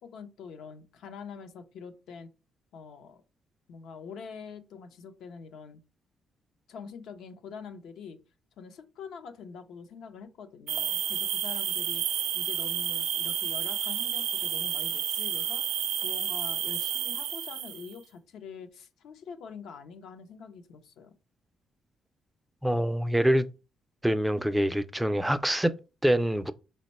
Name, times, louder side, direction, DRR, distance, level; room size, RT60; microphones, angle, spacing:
voice 1, 0.0-2.3 2.7-3.2 3.7-5.8 6.7-8.2 8.6-12.0 12.3-15.6 16.0-21.1, left 6 dB, 80° left, 0.6 m, -45 dB
sound 1, 10.7-17.9, right 9 dB, 85° right, 0.4 m, -30 dB
voice 2, 22.6-23.5 24.0-26.5, equal, 5° right, 0.3 m, -25 dB
4.4 x 2.1 x 4.0 m
cardioid pair, 90°, 0 cm